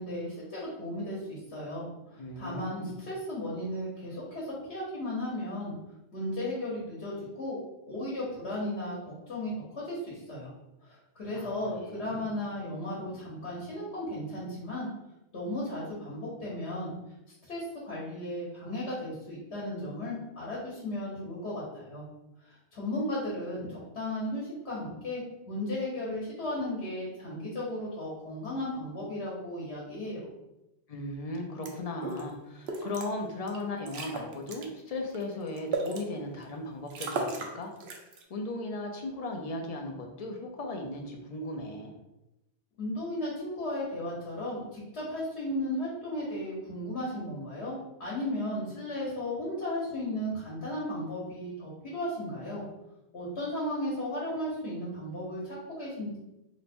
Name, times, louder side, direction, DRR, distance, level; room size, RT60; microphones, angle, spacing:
voice 1, 0.0-5.7 6.1-7.6 7.9-10.5 10.8-14.9 15.3-16.9 17.5-22.0 22.4-30.3 42.8-52.6 53.1-56.2, left 1 dB, 80° left, -5 dB, 1.2 m, -35 dB
voice 2, 2.2-2.9 11.3-12.3 30.9-37.7 38.3-42.0, left 2 dB, 45° left, 2 dB, 0.5 m, -37 dB
sound 1, 31.6-31.7 32.0-32.2 32.7-33.1 33.5-33.6 33.9-34.7 35.1-36.0 36.5-36.6 36.9-37.5 37.8-38.2, right 3 dB, 75° right, 0.8 m, -34 dB
3.0 x 2.1 x 4.2 m, 0.93 s
omnidirectional pair, 1.1 m